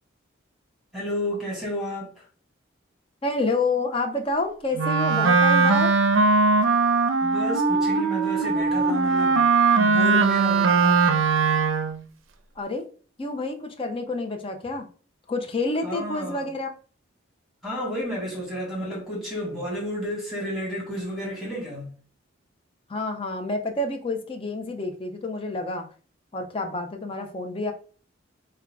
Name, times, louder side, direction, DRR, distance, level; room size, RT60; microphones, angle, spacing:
voice 1, 0.9-2.1 7.2-11.1 15.8-16.5 17.6-21.9, equal, ahead, 1.9 m, -31 dB
voice 2, 3.2-5.9 12.6-12.9 13.2-14.9 15.3-16.7 22.9-25.9 26.3-27.7, left 2 dB, 30° left, 0.6 m, -28 dB
Wind instrument woodwind instrument, 4.8-12.0, right 4 dB, 85° right, 0.5 m, -20 dB
3.7 x 2.3 x 4.5 m
head